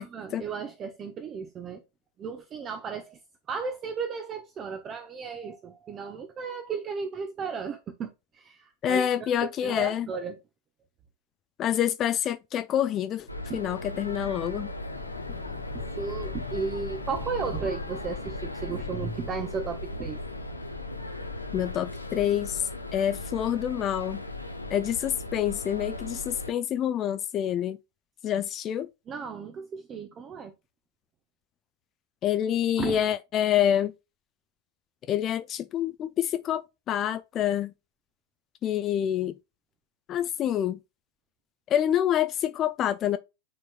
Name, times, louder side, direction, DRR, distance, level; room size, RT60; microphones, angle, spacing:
voice 1, 0.0-1.8 2.2-3.2 3.5-9.3 9.6-10.4 13.5-13.6 15.7-20.2 29.1-30.5 32.8-33.0, right 5 dB, 25° right, 0.9 m, -34 dB
voice 2, 8.8-10.1 11.6-13.3 13.5-14.7 21.5-24.2 24.7-27.8 28.2-28.9 32.2-33.9 35.1-37.7 38.6-39.3 40.1-40.8 41.7-43.2, left 10 dB, 30° left, 0.5 m, -27 dB
sound 1, 13.3-26.5, left 1 dB, 85° left, 0.8 m, -37 dB
sound 2, 14.9-23.5, left 9 dB, 60° left, 1.1 m, -44 dB
9.5 x 4.5 x 2.2 m
figure-of-eight pair, 90°, 0 cm